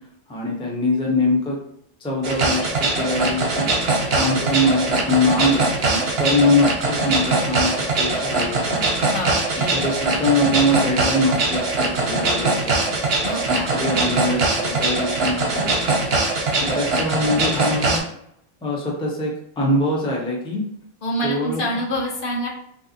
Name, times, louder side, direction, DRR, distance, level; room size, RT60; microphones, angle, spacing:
voice 1, 0.3-1.6 2.0-3.7 4.1-5.7 6.2-9.0 9.7-12.9 13.5-15.7 16.6-18.0 18.6-20.6 21.2-21.6, left 1 dB, 5° left, -3 dB, 0.5 m, -23 dB
sound 1, 2.2-18.0, right 3 dB, 75° right, 1.0 m, -22 dB
voice 2, 9.1-10.1 13.2-13.8 21.0-22.5, equal, 60° left, -4 dB, 1.0 m, -27 dB
3.2 x 2.7 x 2.7 m, 0.72 s
omnidirectional pair, 1.1 m